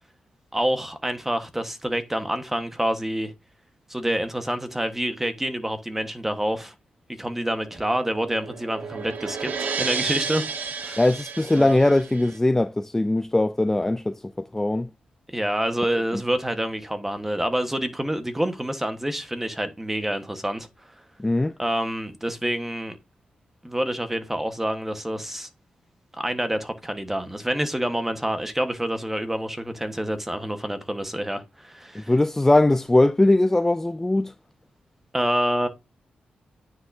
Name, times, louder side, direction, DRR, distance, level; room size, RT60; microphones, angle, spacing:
voice 1, 0.5-3.3 3.9-6.7 7.2-10.5 10.8-11.0 11.5-11.8 15.3-20.7 21.6-23.0 23.6-25.5 26.2-32.1 35.1-35.7, right 1 dB, 10° right, 1.3 m, -27 dB
sound 1, 7.6-12.4, right 5 dB, 75° right, 1.3 m, -32 dB
voice 2, 11.0-14.2 14.5-14.9 16.1-16.2 21.2-21.5 31.9-34.3, left 2 dB, 10° left, 0.4 m, -20 dB
9.5 x 5.9 x 2.7 m
cardioid pair, 90°, 3 cm